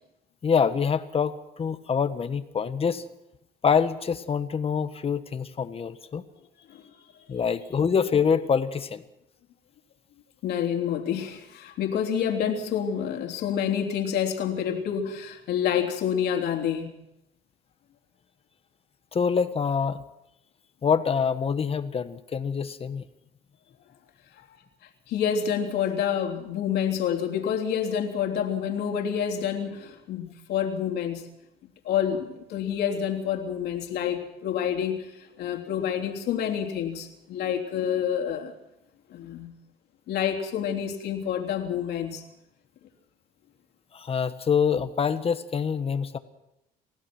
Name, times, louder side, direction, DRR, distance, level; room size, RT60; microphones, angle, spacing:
voice 1, 0.4-3.0 3.6-6.2 7.3-9.0 19.1-20.0 20.8-23.0 43.9-46.2, left 6 dB, 35° left, 10 dB, 1.5 m, -25 dB
voice 2, 10.4-16.9 24.4-24.5 25.1-31.3 31.8-38.5 39.1-39.5 40.1-42.2, left 8 dB, 75° left, 3 dB, 3.4 m, -28 dB
29.0 x 16.0 x 6.1 m, 0.87 s
cardioid pair, 110°, 17 cm